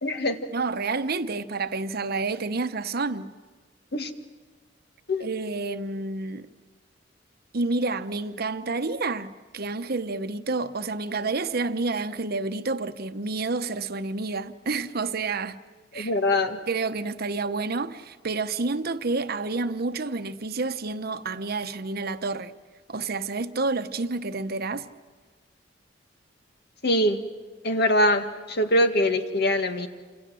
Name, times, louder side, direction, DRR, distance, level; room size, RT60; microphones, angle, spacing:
voice 1, 0.0-0.4 3.9-4.1 5.1-5.3 16.0-16.6 26.8-27.2 27.6-29.9, left 1 dB, 60° left, 1.9 m, -23 dB
voice 2, 0.5-3.3 5.2-6.5 7.5-15.6 15.9-16.1 16.7-22.5 22.9-24.9, right 3 dB, 55° right, 1.0 m, -29 dB
28.5 x 26.5 x 7.7 m
head